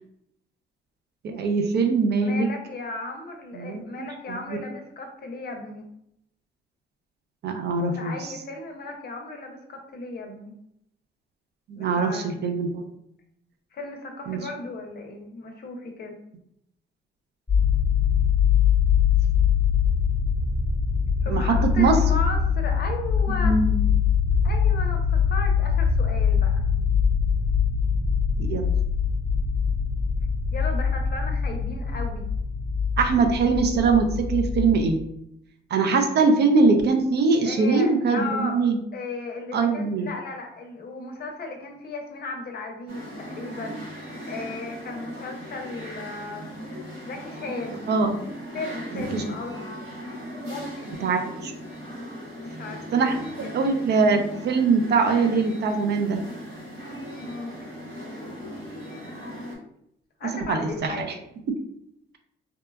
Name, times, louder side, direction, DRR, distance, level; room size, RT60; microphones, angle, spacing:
voice 1, 1.2-2.5 3.6-3.8 7.4-8.2 11.7-12.8 14.3-14.4 21.3-22.0 23.4-23.8 28.4-28.7 33.0-35.0 35.7-38.8 39.5-40.1 47.9-48.1 48.9-49.2 51.0-51.5 52.9-56.2 60.5-61.0, right 4 dB, 55° right, 5 dB, 0.5 m, -22 dB
voice 2, 2.2-5.9 8.0-10.6 11.8-12.3 13.7-16.2 21.2-23.6 24.4-26.7 30.5-32.3 37.4-38.6 38.9-43.8 44.3-46.5 47.0-47.9 48.5-49.7 50.4-51.0 52.0-53.1 53.4-53.6 57.2-57.5 60.2-61.2, left 3 dB, 50° left, 3 dB, 0.6 m, -36 dB
sound 1, 17.5-34.9, left 7 dB, 10° left, 1.0 m, -23 dB
sound 2, 42.9-59.6, equal, 85° right, 1.0 m, -38 dB
2.8 x 2.2 x 2.2 m, 0.77 s
cardioid pair, 90°, 20 cm